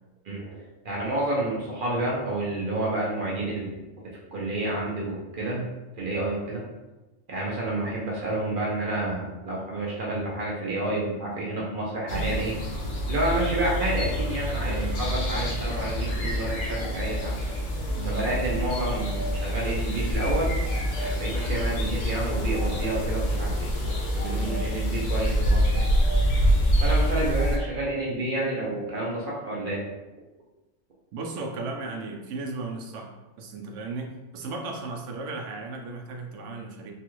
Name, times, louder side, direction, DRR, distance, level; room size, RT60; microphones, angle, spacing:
voice 1, 0.2-3.8 4.3-5.6 6.0-6.6 7.3-12.5 13.1-17.4 18.0-20.6 20.9-25.9 26.8-29.8, right 1 dB, 55° right, -4 dB, 0.6 m, -29 dB
voice 2, 5.4-5.8 14.7-15.0 18.0-18.2 24.3-24.6 31.1-33.1 33.4-36.9, right 3 dB, 80° right, 1 dB, 1.0 m, -35 dB
sound 1, 12.1-27.6, equal, 70° left, 1.0 m, -26 dB
3.3 x 2.3 x 3.0 m, 1.1 s
omnidirectional pair, 1.3 m